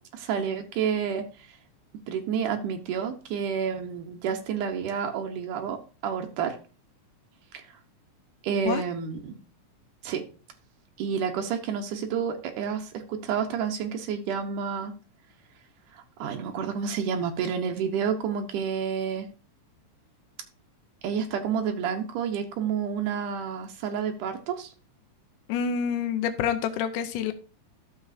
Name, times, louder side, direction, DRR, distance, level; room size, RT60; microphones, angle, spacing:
voice 1, 0.1-1.5 2.1-5.8 6.0-6.6 7.5-7.6 8.4-9.4 10.0-10.2 11.0-14.9 15.9-19.3 21.0-24.7, right 7 dB, 85° right, 2.6 m, -29 dB
voice 2, 25.5-27.3, left 7 dB, 85° left, 2.3 m, -27 dB
12.5 x 7.2 x 2.7 m
omnidirectional pair, 3.5 m